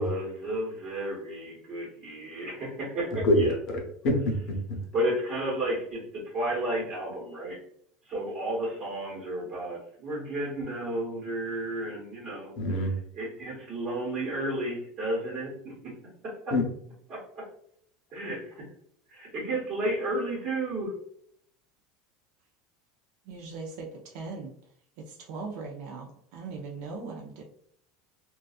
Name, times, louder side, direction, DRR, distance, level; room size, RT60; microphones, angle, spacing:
voice 1, 0.0-3.5 4.9-7.6 8.0-12.6 13.1-16.0 16.2-16.6 17.1-17.5 18.1-18.7 19.1-20.9, right 1 dB, 35° right, -6 dB, 1.0 m, -32 dB
voice 2, 3.2-4.8 12.6-12.9 16.5-16.6, left 1 dB, 45° left, 1 dB, 0.8 m, -26 dB
voice 3, 23.2-24.5 25.0-27.4, right 4 dB, 60° right, 0 dB, 0.4 m, -39 dB
2.6 x 2.2 x 2.3 m, 0.66 s
supercardioid pair, 155°, 0 cm